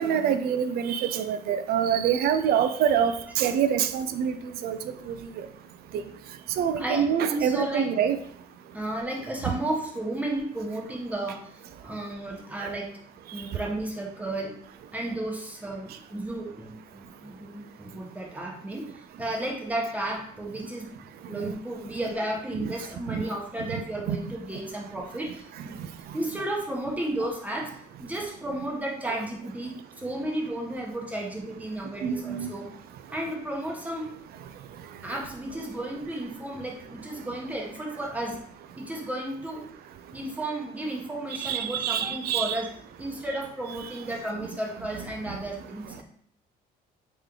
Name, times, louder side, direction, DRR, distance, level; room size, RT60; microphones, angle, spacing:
voice 1, 0.0-4.8 5.1-5.5 6.6-8.2 9.5-9.6 12.6-12.7 22.5-22.7 23.1-23.2 23.7-23.8 24.1-24.2 29.1-29.2 32.0-32.5 41.4-42.6, right 8 dB, 65° right, 10 dB, 0.4 m, -26 dB
voice 2, 6.8-7.9 8.7-11.5 11.8-12.9 13.3-14.5 14.9-20.9 21.3-25.8 26.1-27.7 28.0-32.7 33.1-34.1 35.0-38.4 38.8-39.6 40.1-42.7 43.0-46.0, right 1 dB, 10° right, -1 dB, 0.9 m, -33 dB
3.2 x 3.0 x 3.7 m, 0.64 s
cardioid pair, 110°, 17 cm